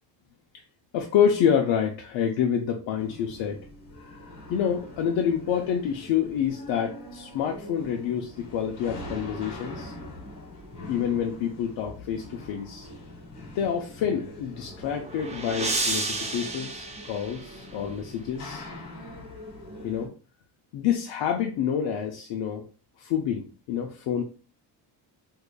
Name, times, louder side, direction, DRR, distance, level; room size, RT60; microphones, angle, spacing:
voice 1, 0.9-3.6 4.5-9.9 10.9-12.9 13.5-18.7 19.8-20.1 20.7-22.6 23.0-24.2, left 8 dB, 80° left, 1 dB, 0.7 m, -27 dB
sound 1, 3.0-20.1, left 1 dB, 45° left, 1.5 m, -43 dB
sound 2, 14.5-17.9, right 2 dB, 15° right, 0.4 m, -32 dB
4.8 x 2.8 x 2.2 m, 0.35 s
cardioid pair, 160°, 43 cm